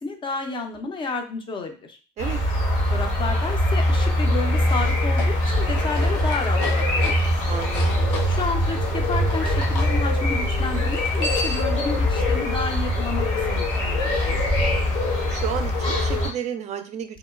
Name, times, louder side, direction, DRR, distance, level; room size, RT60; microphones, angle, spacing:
voice 1, 0.0-2.0 2.9-7.3 8.2-14.5, left 3 dB, 25° left, 5 dB, 0.6 m, -31 dB
sound 1, 2.2-16.3, left 1 dB, 60° left, 1.1 m, -22 dB
sound 2, 5.1-9.9 10.9-11.8, left 3 dB, 85° left, 0.7 m, -34 dB
voice 2, 7.5-8.0 15.3-17.2, right 8 dB, 35° right, 8 dB, 0.4 m, -31 dB
2.9 x 2.1 x 2.3 m, 0.36 s
supercardioid pair, 105°, 21 cm